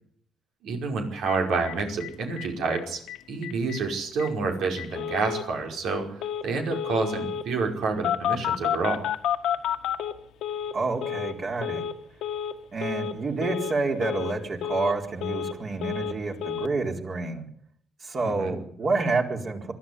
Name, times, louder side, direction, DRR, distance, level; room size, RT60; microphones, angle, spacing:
voice 1, 0.6-3.0 3.3-9.1 18.2-18.5, right 4 dB, 90° right, 3 dB, 5.3 m, -28 dB
Telephone, 1.3-1.4 1.7-1.8 2.0-2.1 2.4-2.8 3.1-3.2 3.4-3.8 4.2-4.3 4.8-5.4 6.2-6.4 6.7-7.4 8.0-10.7 11.0-11.3 11.6-11.9 12.2-12.5 12.8-13.1 13.4-13.7 14.0-14.3 14.6-15.5 15.8-16.2 16.4-16.7, left 9 dB, 90° left, 1.7 m, -30 dB
voice 2, 10.7-11.8 12.7-17.5 18.0-19.7, right 3 dB, 45° right, 2 dB, 4.3 m, -28 dB
22.5 x 13.5 x 9.7 m, 0.63 s
cardioid pair, 100°, 0 cm